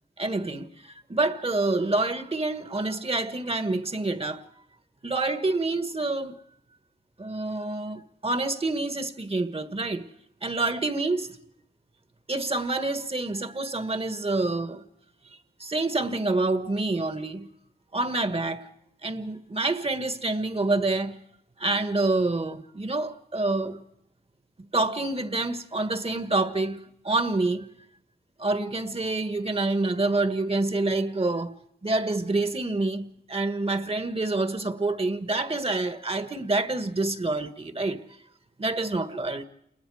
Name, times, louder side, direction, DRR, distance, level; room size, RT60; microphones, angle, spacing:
voice 1, 0.2-4.4 5.0-6.4 7.2-10.1 10.4-11.4 12.3-14.8 15.3-17.5 17.9-18.7 19.0-21.2 21.6-23.8 24.7-27.7 28.4-31.5 31.8-38.0 38.6-39.5, right 2 dB, 35° right, 1.5 m, -27 dB
28.5 x 20.5 x 4.9 m
cardioid pair, 55°, 18 cm